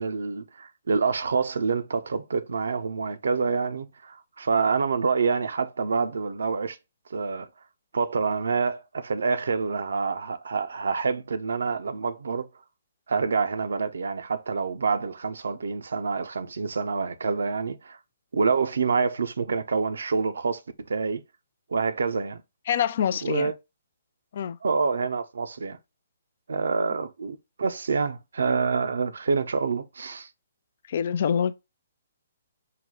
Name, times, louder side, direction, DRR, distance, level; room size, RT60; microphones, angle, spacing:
voice 1, 0.0-6.8 7.1-7.5 7.9-12.5 13.1-18.0 18.3-20.6 20.9-21.2 21.7-22.4 23.2-23.5 24.6-25.8 26.5-30.3, right 4 dB, 65° right, 0.6 m, -27 dB
voice 2, 22.7-23.5 24.3-24.6 30.9-31.5, left 8 dB, 50° left, 0.4 m, -25 dB
5.7 x 2.2 x 3.6 m
figure-of-eight pair, 130°, 0 cm